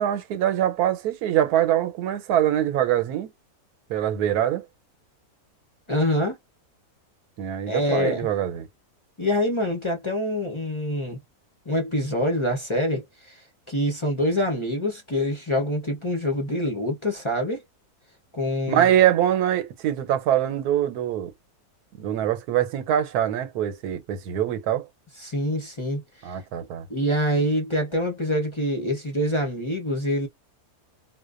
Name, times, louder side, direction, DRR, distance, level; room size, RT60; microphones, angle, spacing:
voice 1, 0.0-3.3 3.9-4.6 7.4-8.7 18.7-21.3 21.9-24.9 26.2-26.9, right 11 dB, 80° right, 1.2 m, -23 dB
voice 2, 5.9-6.4 7.7-8.3 9.2-11.2 11.7-17.6 18.3-18.9 25.2-26.4 26.9-30.3, left 1 dB, 35° left, 0.5 m, -25 dB
2.4 x 2.2 x 2.4 m
omnidirectional pair, 1.6 m